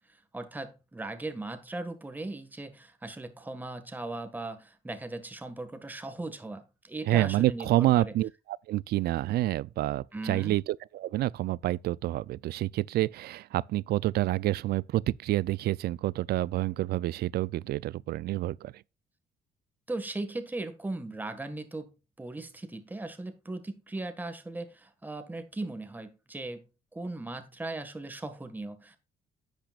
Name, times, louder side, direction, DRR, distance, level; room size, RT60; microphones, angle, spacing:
voice 1, 0.3-8.1 10.1-10.6 19.9-21.9 22.2-26.7 26.9-29.0, right 2 dB, 10° right, 1.6 m, -38 dB
voice 2, 7.1-8.3 8.7-18.8, right 15 dB, 70° right, 0.4 m, -28 dB
10.0 x 9.0 x 2.4 m
cardioid pair, 125°, 17 cm